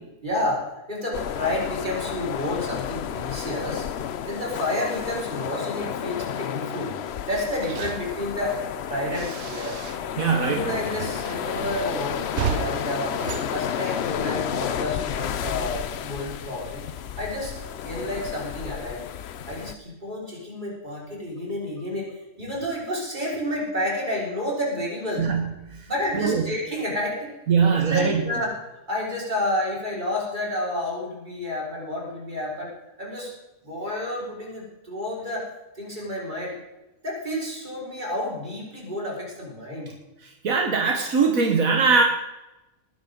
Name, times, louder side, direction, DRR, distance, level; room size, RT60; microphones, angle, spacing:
voice 1, 0.2-3.9 4.2-6.9 7.3-8.6 8.9-9.8 10.4-13.1 13.5-16.8 17.2-17.5 17.8-19.0 19.5-22.1 22.4-25.3 25.9-27.3 27.9-28.5 28.9-32.7 33.0-33.3 33.6-35.4 35.8-36.6 37.0-39.9, left 1 dB, 35° right, -4 dB, 5.3 m, -30 dB
sound 1, 1.1-19.8, left 9 dB, 60° left, 0.8 m, -32 dB
sound 2, 7.3-10.2 10.5-14.4, right 7 dB, 60° right, 1.0 m, -35 dB
voice 2, 10.2-10.8 25.2-25.5 26.1-26.4 27.5-28.2 40.2-42.0, right 5 dB, 80° right, 2 dB, 1.7 m, -21 dB
19.5 x 11.0 x 3.9 m, 0.98 s
omnidirectional pair, 1.4 m